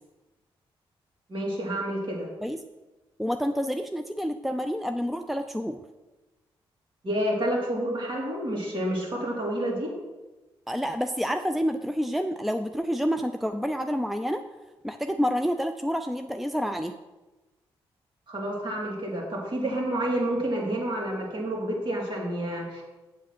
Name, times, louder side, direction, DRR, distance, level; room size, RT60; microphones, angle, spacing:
voice 1, 1.3-2.3 7.0-9.9 18.3-22.8, right 1 dB, 50° right, -3 dB, 4.0 m, -29 dB
voice 2, 3.2-5.8 10.7-14.4 14.8-17.0, equal, ahead, 8 dB, 0.6 m, -28 dB
8.1 x 7.6 x 6.1 m, 1.1 s
supercardioid pair, 45°, 11 cm